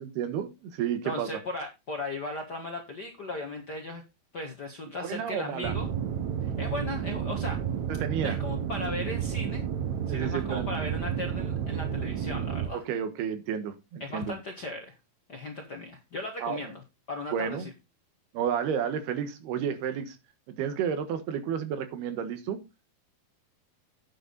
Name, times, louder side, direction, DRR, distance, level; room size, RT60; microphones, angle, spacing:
voice 1, 0.0-1.4 5.0-5.7 7.9-8.4 10.1-10.7 12.7-14.4 16.4-16.6 17.3-17.7 18.3-20.2 20.5-22.6, right 8 dB, 90° right, 9 dB, 3.4 m, -31 dB
voice 2, 1.0-4.0 4.3-5.9 6.4-7.6 8.2-9.6 10.1-12.8 14.0-15.0 15.3-17.7, left 2 dB, 65° left, 2 dB, 1.0 m, -37 dB
sound 1, 5.6-12.7, right 8 dB, 65° right, 1.9 m, -31 dB
9.0 x 8.7 x 4.0 m, 0.25 s
omnidirectional pair, 4.4 m